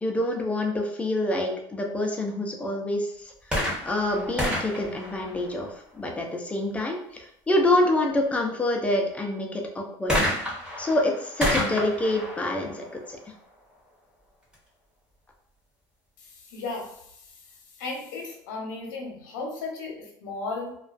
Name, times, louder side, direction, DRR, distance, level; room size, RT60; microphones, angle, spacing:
voice 1, 0.0-3.3 3.8-10.2 10.8-13.2, left 1 dB, 15° left, 1 dB, 0.4 m, -26 dB
sound 1, 3.4-6.0 10.1-13.7 14.5-14.6, equal, 10° right, 0.9 m, -30 dB
voice 2, 16.5-17.0 17.8-20.8, left 3 dB, 85° left, 0 dB, 0.7 m, -34 dB
2.3 x 2.3 x 2.4 m, 0.72 s
supercardioid pair, 115°, 10 cm